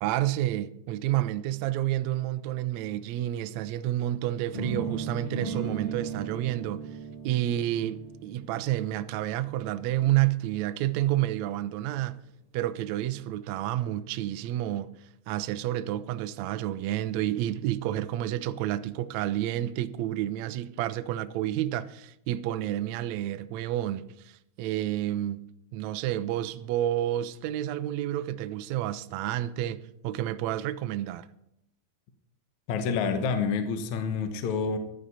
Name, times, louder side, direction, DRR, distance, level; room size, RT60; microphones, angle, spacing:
voice 1, 0.0-6.8 7.2-12.2 12.5-14.9 15.3-25.4 25.7-31.3, right 13 dB, 85° right, 1.6 m, -30 dB
sound 1, 4.5-10.5, right 5 dB, 30° right, 5.2 m, -37 dB
voice 2, 32.7-34.8, left 5 dB, 65° left, 2.2 m, -28 dB
15.0 x 11.5 x 4.1 m
omnidirectional pair, 4.0 m